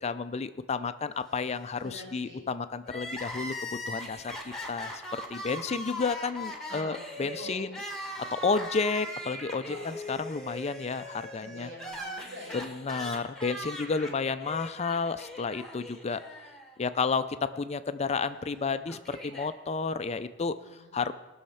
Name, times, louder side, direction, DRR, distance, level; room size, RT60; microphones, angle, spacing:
voice 1, 0.0-3.5 3.9-4.4 4.7-7.8 8.4-11.7 12.5-16.2 16.8-20.6 20.9-21.1, left 4 dB, 35° left, 12 dB, 0.4 m, -31 dB
voice 2, 1.8-2.5 6.7-7.7 9.7-10.0 11.4-12.7 13.8-14.1 20.6-20.9, left 1 dB, 70° right, 0 dB, 4.4 m, -45 dB
Crying sobbing, 2.8-17.0 17.3-17.4 18.4-19.5, left 1 dB, 5° left, 1.4 m, -40 dB
19.0 x 6.4 x 5.7 m, 1.1 s
head